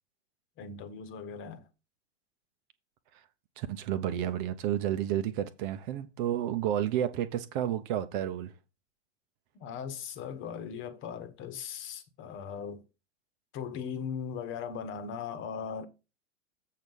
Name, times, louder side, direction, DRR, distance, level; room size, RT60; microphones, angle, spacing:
voice 1, 0.6-1.7 9.5-12.8 13.5-15.9, left 7 dB, 35° left, 1.3 m, -38 dB
voice 2, 3.6-8.5, right 11 dB, 45° right, 1.0 m, -31 dB
7.8 x 4.8 x 5.4 m
figure-of-eight pair, 100°, 35 cm